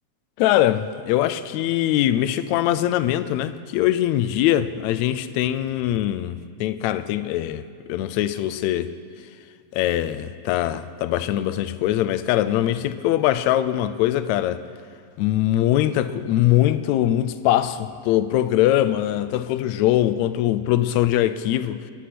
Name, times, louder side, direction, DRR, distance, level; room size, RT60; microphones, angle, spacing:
voice 1, 0.4-7.6 7.9-8.9 9.7-14.6 15.2-21.9, left 13 dB, 80° left, 12 dB, 1.8 m, -22 dB
22.0 x 10.0 x 6.0 m, 2.3 s
omnidirectional pair, 3.3 m